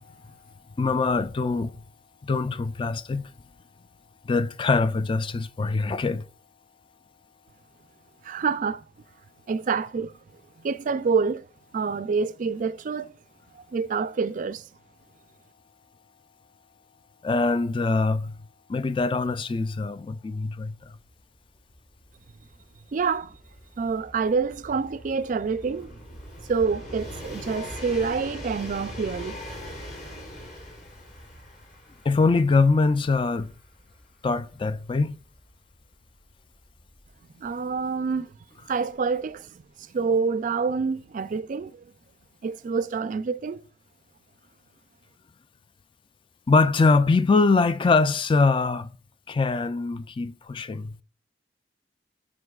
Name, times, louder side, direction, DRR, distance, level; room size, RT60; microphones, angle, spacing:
voice 1, 0.8-1.8 2.2-3.3 4.2-6.3 17.2-18.4 18.7-21.0 32.1-33.5 34.2-35.2 46.5-48.9 49.3-51.0, left 3 dB, 30° left, 0.3 m, -23 dB
voice 2, 8.2-8.8 9.5-10.2 10.6-11.5 11.7-13.1 13.5-14.6 22.9-23.4 23.8-26.0 26.5-29.4 37.4-38.3 38.7-41.8 42.4-43.6, right 5 dB, 45° right, 0.4 m, -27 dB
Train, 20.8-20.9 21.1-37.7 38.7-38.8, equal, 55° left, 3.0 m, -42 dB
12.5 x 5.1 x 2.3 m
head